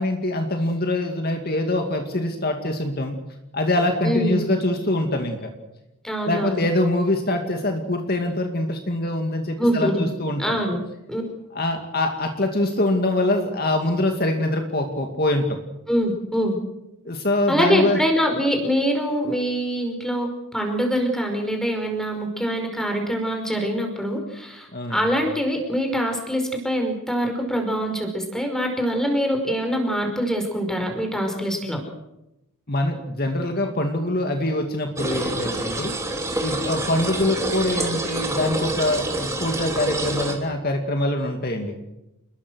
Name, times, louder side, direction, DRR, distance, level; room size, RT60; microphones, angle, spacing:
voice 1, 0.0-3.2 3.5-5.5 6.3-10.6 11.5-15.5 17.0-18.0 24.7-25.0 32.7-35.9 36.4-41.8, left 1 dB, 45° left, 4 dB, 2.4 m, -24 dB
voice 2, 4.0-4.5 6.0-6.6 9.6-10.1 10.4-10.8 11.1-11.2 15.9-16.6 17.5-31.8, equal, ahead, 3 dB, 5.2 m, -24 dB
sound 1, 35.0-40.3, right 2 dB, 15° right, 3.1 m, -27 dB
29.5 x 21.5 x 6.5 m, 0.91 s
head